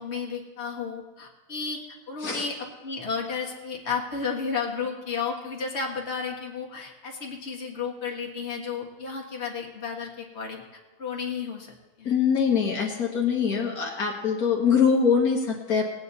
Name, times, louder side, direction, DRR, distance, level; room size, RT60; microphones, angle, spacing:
voice 1, 0.0-1.8 2.1-2.6 2.8-10.6 11.0-12.1, left 5 dB, 45° left, -1 dB, 2.0 m, -32 dB
voice 2, 12.1-15.9, left 6 dB, 75° left, -1 dB, 1.9 m, -23 dB
19.0 x 8.9 x 4.1 m, 1.2 s
omnidirectional pair, 1.6 m